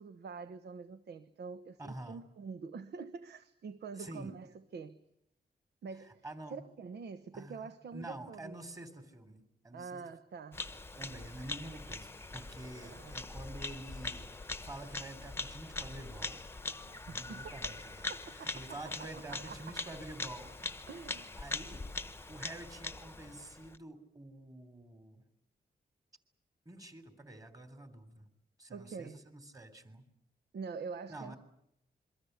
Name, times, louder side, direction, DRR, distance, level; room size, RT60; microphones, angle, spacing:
voice 1, 0.0-5.0 5.8-8.6 9.7-10.7 12.8-13.2 16.9-17.8 18.1-18.6 19.3-19.7 20.9-21.3 28.7-29.2 30.5-31.3, right 5 dB, 80° right, 1.1 m, -46 dB
voice 2, 1.8-2.2 4.0-4.3 6.2-6.6 7.3-10.0 10.9-16.4 17.0-20.5 21.3-21.9 22.3-25.2 26.6-28.3 28.6-30.0 31.1-31.4, right 1 dB, 20° right, 3.3 m, -48 dB
Bird vocalization bird call bird song, 10.5-23.8, left 3 dB, 15° left, 1.0 m, -42 dB
27.0 x 23.5 x 8.1 m
wide cardioid pair, 140°, 17 cm